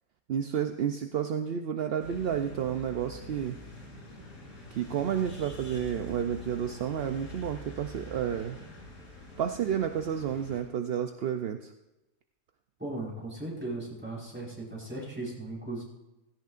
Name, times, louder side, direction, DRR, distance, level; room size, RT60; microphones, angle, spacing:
voice 1, 0.3-3.6 4.7-8.6 9.4-11.7, right 9 dB, 60° right, 6 dB, 0.7 m, -31 dB
sound 1, 2.0-10.6, left 1 dB, 85° left, 3.7 m, -46 dB
voice 2, 12.8-15.8, right 2 dB, 5° right, -5 dB, 4.7 m, -37 dB
17.0 x 16.0 x 2.5 m, 0.99 s
omnidirectional pair, 1.5 m